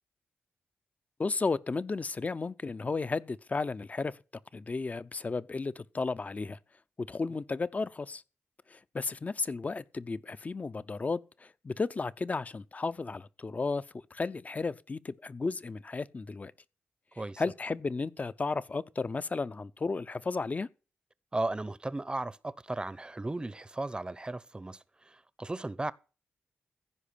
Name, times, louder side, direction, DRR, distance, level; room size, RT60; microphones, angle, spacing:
voice 1, 1.2-4.2 4.5-6.6 7.0-8.2 8.7-13.9 14.1-16.5 17.4-20.7, left 4 dB, 35° left, 0.7 m, -33 dB
voice 2, 21.3-25.9, right 2 dB, 20° right, 0.7 m, -36 dB
15.5 x 5.1 x 8.5 m
cardioid pair, 75°, 4 cm